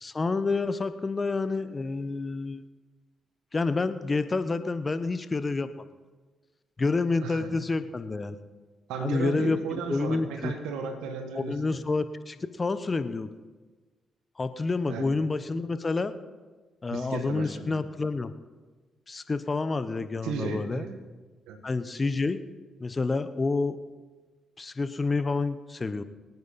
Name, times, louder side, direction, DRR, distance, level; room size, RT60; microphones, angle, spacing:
voice 1, 0.0-2.6 3.5-5.8 6.8-8.4 9.0-9.6 9.9-10.5 11.3-13.4 14.4-16.1 16.8-18.3 19.1-20.8 21.6-22.4 22.8-23.8 24.6-26.0, left 3 dB, 35° left, 12 dB, 1.0 m, -28 dB
voice 2, 8.9-11.8 14.9-15.0 16.9-17.8 20.2-21.0 21.5-21.6, right 5 dB, 80° right, 6 dB, 1.6 m, -35 dB
23.5 x 9.3 x 4.2 m, 1.3 s
hypercardioid pair, 45°, 0 cm